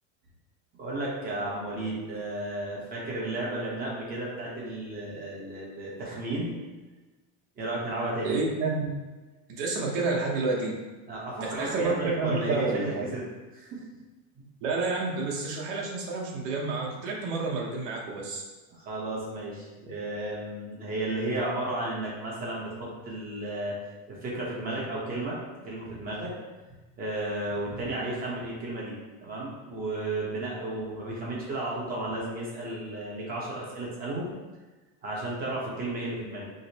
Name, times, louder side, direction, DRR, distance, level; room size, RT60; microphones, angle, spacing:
voice 1, 0.8-6.5 7.6-8.4 11.1-13.2 13.5-13.8 14.4-14.5 18.7-23.7 24.1-26.3 27.0-28.9 29.2-34.3 35.0-36.5, right 2 dB, 25° right, -5 dB, 0.9 m, -33 dB
voice 2, 8.2-8.8 9.5-10.8 11.4-13.1 14.6-18.4, right 3 dB, 70° right, -2 dB, 1.0 m, -29 dB
4.9 x 2.0 x 2.8 m, 1.2 s
cardioid pair, 180°, 36 cm